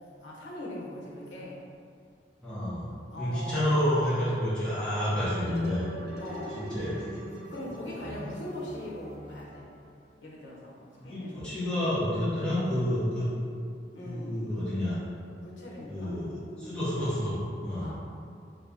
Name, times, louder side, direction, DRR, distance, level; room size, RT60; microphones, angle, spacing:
voice 1, 0.2-1.6 3.1-3.9 6.2-6.6 7.5-9.7 10.2-11.8 13.9-14.6 15.4-16.8 17.2-17.3 17.8-18.0, left 1 dB, 85° left, -3 dB, 0.7 m, -41 dB
voice 2, 2.4-2.9 3.2-5.9 6.6-7.1 8.0-8.3 11.0-13.3 14.0-15.0 15.9-16.3 16.6-17.9, equal, 5° left, -13 dB, 0.8 m, -29 dB
sound 1, 5.2-10.1, equal, 65° right, 0.6 m, -44 dB
2.8 x 2.6 x 3.5 m, 2.4 s
head